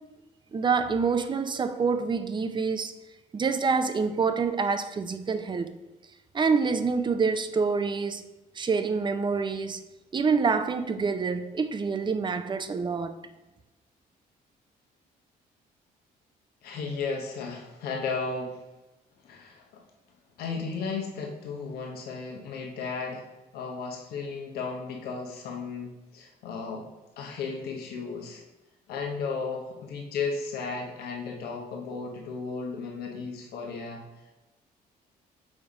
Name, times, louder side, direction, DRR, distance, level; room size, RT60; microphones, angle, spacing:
voice 1, 0.5-2.9 3.3-5.8 6.3-8.2 8.6-9.8 10.1-13.2, right 5 dB, 30° right, 0.6 m, -26 dB
voice 2, 16.6-18.6 19.2-19.8 20.4-23.3 23.5-26.9 27.2-28.4 28.9-34.0, left 4 dB, 85° left, 1.1 m, -34 dB
5.0 x 4.0 x 4.8 m
cardioid pair, 85°, 16 cm